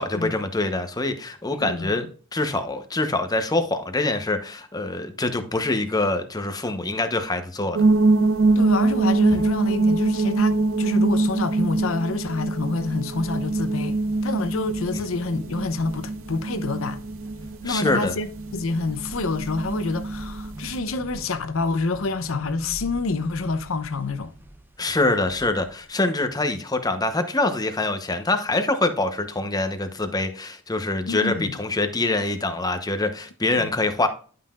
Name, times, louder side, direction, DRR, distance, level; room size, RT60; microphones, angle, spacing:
voice 1, 0.0-2.1 2.3-7.8 17.6-18.2 24.8-34.1, left 2 dB, 20° left, 0.9 m, -25 dB
voice 2, 1.6-2.1 8.6-17.0 17.6-24.3 31.0-31.6 33.6-33.7, left 3 dB, 75° left, 0.7 m, -27 dB
sound 1, 7.8-20.8, right 2 dB, 75° right, 0.6 m, -24 dB
sound 2, 13.2-25.9, right 1 dB, 10° right, 0.7 m, -45 dB
10.5 x 5.6 x 2.4 m
head